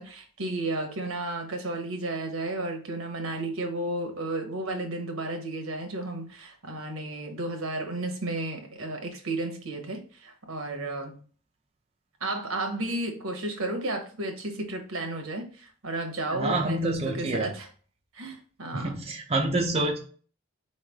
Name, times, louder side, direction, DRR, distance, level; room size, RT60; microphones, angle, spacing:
voice 1, 0.0-11.2 12.2-17.7 18.1-19.0, right 2 dB, 65° right, 1.1 m, -33 dB
voice 2, 16.3-17.5 18.7-20.0, right 2 dB, 25° right, 0.5 m, -27 dB
4.7 x 3.2 x 3.5 m
head